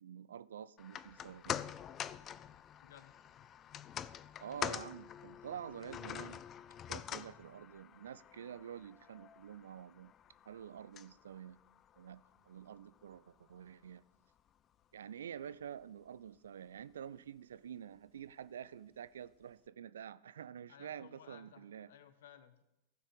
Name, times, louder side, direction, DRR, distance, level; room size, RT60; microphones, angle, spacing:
voice 1, 0.0-1.6 4.4-6.4 6.9-10.1 10.5-11.6 12.0-14.0 14.9-21.9, right 9 dB, 65° right, 0.4 m, -48 dB
sound 1, 0.8-13.2 13.5-13.6, left 9 dB, 30° left, 0.4 m, -46 dB
voice 2, 2.8-3.1 20.7-22.6, left 9 dB, 60° left, 0.9 m, -58 dB
15.0 x 6.3 x 5.4 m
figure-of-eight pair, 90°, 0 cm